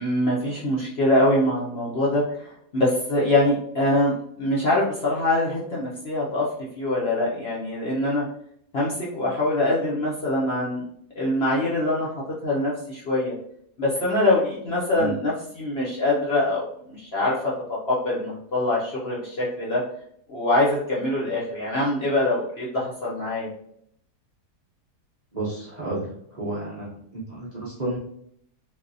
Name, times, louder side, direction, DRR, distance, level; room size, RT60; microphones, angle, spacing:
voice 1, 0.0-4.1 4.4-6.5 6.8-8.2 8.7-10.8 11.2-12.1 12.4-13.3 13.8-16.7 17.0-19.8 20.3-23.5, left 1 dB, 55° left, -5 dB, 0.7 m, -24 dB
voice 2, 25.3-26.1 26.3-28.0, right 2 dB, 45° right, -7 dB, 0.5 m, -31 dB
3.4 x 2.6 x 2.5 m, 0.68 s
omnidirectional pair, 1.7 m